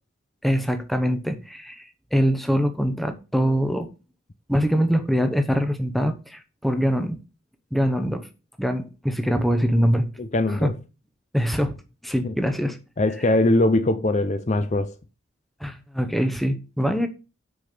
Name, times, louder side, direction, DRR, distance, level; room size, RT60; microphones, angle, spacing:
voice 1, 0.4-3.9 4.5-7.2 7.7-8.3 8.6-10.1 10.5-10.7 11.3-11.7 12.0-12.8 15.6-17.1, equal, ahead, 0.8 m, -23 dB
voice 2, 10.2-10.7 12.2-12.3 13.0-14.9, left 2 dB, 35° left, 0.5 m, -21 dB
6.3 x 5.9 x 6.7 m
head